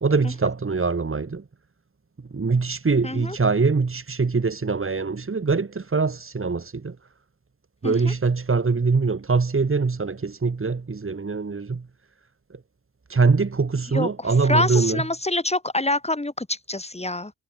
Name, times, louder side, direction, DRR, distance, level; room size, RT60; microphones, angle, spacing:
voice 1, 0.0-1.4 2.3-7.0 7.8-11.8 13.1-15.0, right 4 dB, 40° right, 1.8 m, -23 dB
voice 2, 3.0-3.4 7.8-8.1 13.9-17.3, left 2 dB, 20° left, 2.0 m, -26 dB
cardioid pair, 45°, 34 cm